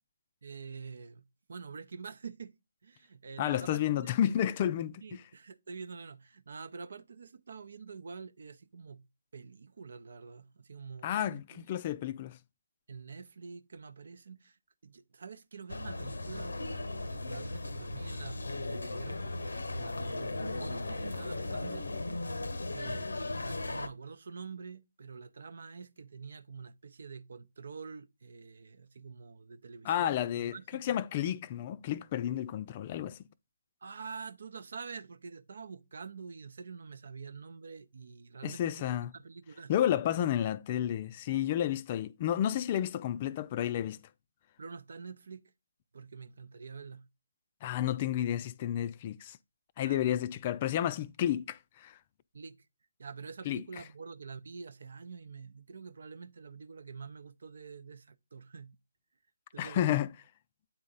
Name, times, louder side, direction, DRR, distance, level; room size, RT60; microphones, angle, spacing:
voice 1, 0.4-2.5 2.8-4.3 5.0-9.0 9.3-11.6 12.9-14.6 14.8-16.6 17.1-19.4 19.7-21.9 22.7-31.0 33.8-39.7 44.6-45.5 45.9-47.1 49.8-50.2 52.3-52.6 53.0-58.7 59.5-60.0, right 5 dB, 60° right, 0.7 m, -46 dB
voice 2, 3.4-5.0 11.0-12.4 29.9-33.2 38.4-39.1 39.7-44.0 47.6-49.4 49.8-52.0 53.5-53.6 59.6-60.1, left 11 dB, 30° left, 0.4 m, -31 dB
sound 1, 15.7-23.9, left 2 dB, 80° left, 0.8 m, -37 dB
8.7 x 4.0 x 3.8 m
figure-of-eight pair, 155°, 0 cm